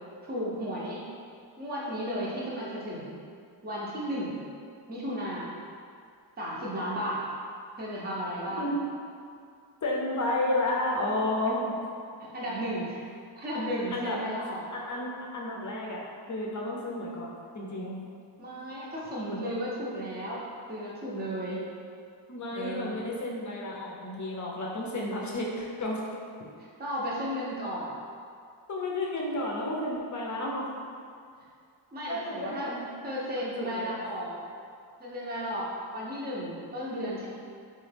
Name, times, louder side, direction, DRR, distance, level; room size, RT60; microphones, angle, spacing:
voice 1, 0.3-1.1 1.6-3.1 3.6-4.4 4.9-5.6 6.4-7.2 7.8-8.7 12.2-12.9 13.4-14.6 18.4-20.4 20.7-21.6 22.5-22.9 26.6-28.0 31.9-32.7 33.0-34.3 35.0-37.3, equal, 20° right, -6 dB, 0.6 m, -34 dB
voice 2, 9.8-11.8 13.9-14.2 14.7-18.0 22.3-26.0 28.7-30.7 32.1-32.8 33.4-34.0, left 1 dB, 40° left, -3 dB, 0.6 m, -32 dB
3.0 x 2.2 x 3.2 m, 2.3 s
wide cardioid pair, 90°, 47 cm